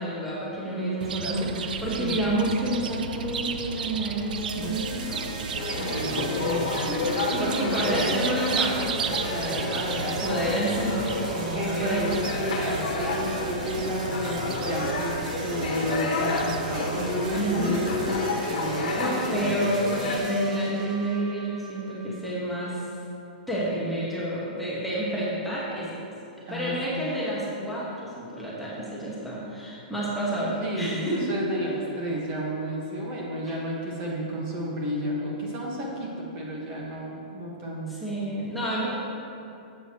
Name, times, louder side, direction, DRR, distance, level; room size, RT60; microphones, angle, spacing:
voice 1, 0.0-5.2 6.5-12.1 17.3-17.8 19.0-22.9 23.5-26.0 26.5-31.3 33.5-33.6 37.9-38.9, right 1 dB, ahead, -8 dB, 1.2 m, -29 dB
voice 2, 0.6-1.6 2.0-2.2 4.5-5.2 5.6-6.9 7.4-8.3 9.6-10.6 11.4-19.5 26.5-27.1 30.6-38.0, equal, 25° right, -3 dB, 1.2 m, -32 dB
Chirp tweet, 1.0-18.2, right 6 dB, 75° right, 0.5 m, -35 dB
sound 1, 4.4-22.3, right 3 dB, 50° right, 1.0 m, -39 dB
sound 2, 5.5-20.2, left 3 dB, 65° left, 1.3 m, -31 dB
12.0 x 7.7 x 2.9 m, 2.7 s
hypercardioid pair, 165°, 5 cm